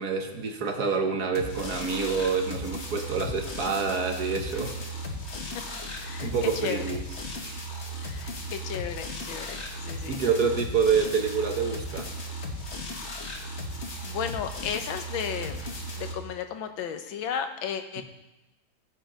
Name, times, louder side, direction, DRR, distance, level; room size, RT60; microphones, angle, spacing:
voice 1, 0.0-4.8 6.2-7.0 7.4-7.6 10.1-12.1 18.0-18.1, right 5 dB, 55° right, 4 dB, 1.6 m, -27 dB
sound 1, 1.4-16.1, equal, 40° left, 1.5 m, -36 dB
voice 2, 5.9-7.0 8.0-10.2 14.0-15.6 15.9-18.0, left 8 dB, 85° left, 8 dB, 1.6 m, -34 dB
14.5 x 7.9 x 5.1 m, 1.0 s
omnidirectional pair, 2.1 m